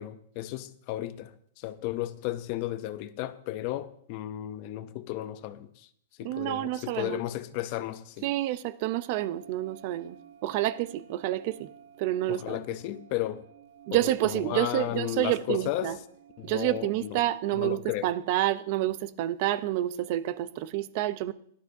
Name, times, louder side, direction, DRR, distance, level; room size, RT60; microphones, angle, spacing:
voice 1, 0.0-5.9 6.2-8.3 12.3-13.4 13.9-16.0 16.4-17.2 17.5-18.1, left 14 dB, 35° left, 0.6 m, -34 dB
voice 2, 6.2-7.2 8.2-10.2 10.4-11.7 12.0-12.6 13.9-16.0 16.4-21.3, right 14 dB, 40° right, 0.6 m, -29 dB
sound 1, 9.2-17.3, right 9 dB, 85° right, 1.1 m, -53 dB
18.0 x 12.0 x 2.7 m
supercardioid pair, 170°, 0 cm